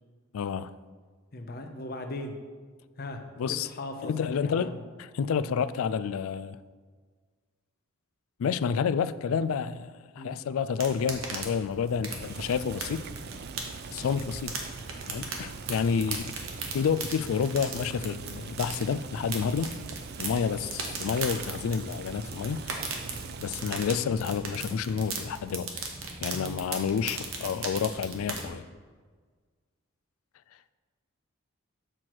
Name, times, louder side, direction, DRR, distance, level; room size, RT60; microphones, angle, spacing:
voice 1, 0.3-0.7 3.4-3.7 4.0-6.6 8.4-13.1 13.9-14.5 15.1-16.3 16.7-19.8 20.2-22.7 23.4-25.8 26.2-28.6, left 6 dB, 80° left, 0.3 m, -29 dB
voice 2, 1.3-2.3 3.0-3.2 3.6-4.8 10.2-10.4 26.3-26.6, left 2 dB, 45° left, 0.7 m, -38 dB
sound 1, 10.8-28.5, right 4 dB, 70° right, 1.2 m, -38 dB
Boiling, 12.2-24.0, right 5 dB, 50° right, 0.3 m, -43 dB
7.7 x 4.5 x 6.2 m
head